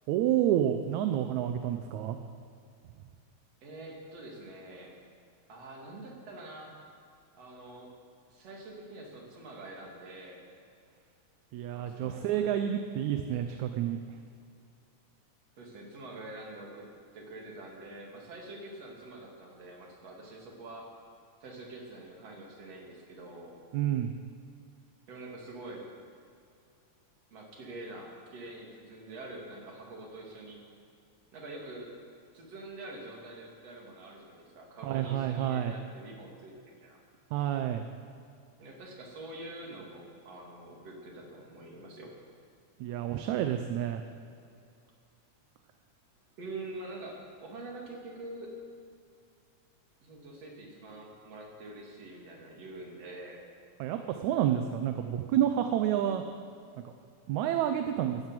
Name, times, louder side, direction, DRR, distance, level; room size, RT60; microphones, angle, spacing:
voice 1, 0.1-2.2 11.5-14.0 23.7-24.1 34.8-35.7 37.3-37.9 42.8-44.0 53.8-56.2 57.3-58.2, right 10 dB, 75° right, 7 dB, 2.0 m, -29 dB
voice 2, 3.6-4.9 5.5-6.8 7.3-7.9 8.3-10.4 11.7-12.5 13.3-13.4 15.6-16.9 17.1-20.9 21.4-23.6 25.1-25.9 27.3-30.6 31.3-31.9 32.3-37.0 38.6-42.1 46.4-48.5 50.0-53.4, right 2 dB, 55° right, -1 dB, 3.6 m, -45 dB
16.0 x 11.0 x 7.6 m, 2.4 s
omnidirectional pair, 3.5 m